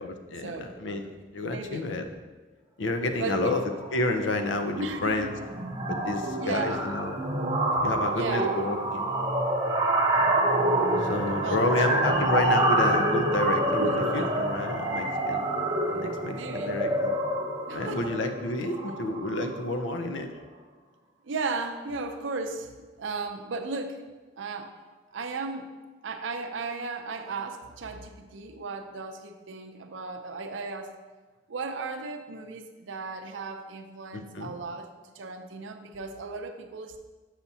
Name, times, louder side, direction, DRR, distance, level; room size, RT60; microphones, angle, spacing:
voice 1, 0.0-2.0 2.8-5.4 5.9-7.2 7.8-9.1 11.0-15.5 15.9-17.2 17.7-20.3 34.1-34.5, left 2 dB, 75° left, 6 dB, 0.6 m, -30 dB
voice 2, 1.4-1.9 3.2-3.6 4.8-5.3 6.4-6.9 7.7-7.8 8.1-8.5 11.4-12.0 13.8-14.4 15.0-15.1 15.6-15.8 16.3-16.8 17.7-18.1 21.2-22.7 23.0-24.0 24.4-24.7 25.1-25.7 26.0-30.9 31.5-37.0, right 3 dB, 85° right, 6 dB, 0.6 m, -35 dB
sound 1, 3.7-3.9 4.2-4.4 4.7-19.6, right 1 dB, 20° right, 0.7 m, -27 dB
7.0 x 5.7 x 2.7 m, 1.3 s
head